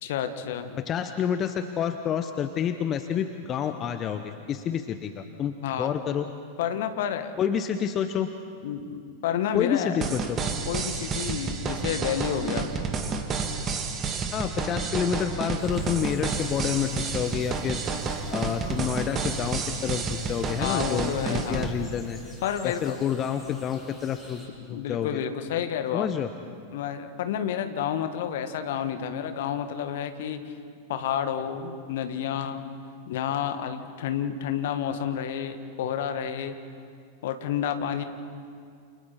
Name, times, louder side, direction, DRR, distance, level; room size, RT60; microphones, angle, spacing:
voice 1, 0.0-0.8 5.6-5.9 6.6-7.3 8.6-10.0 10.7-12.8 20.6-21.7 22.4-23.0 24.7-26.1 26.7-30.4 30.9-32.6 33.1-36.5 37.2-38.0, left 9 dB, 55° left, 8 dB, 1.6 m, -30 dB
voice 2, 0.9-6.3 7.4-8.3 9.5-10.4 14.3-17.8 18.3-22.2 22.6-25.2 25.9-26.3, left 8 dB, 30° left, 9 dB, 0.9 m, -29 dB
sound 1, 10.0-21.7, right 5 dB, 25° right, 1.9 m, -30 dB
sound 2, 15.6-24.5, left 1 dB, 10° left, 5.9 m, -50 dB
29.0 x 29.0 x 4.3 m, 2.3 s
figure-of-eight pair, 90°, 0 cm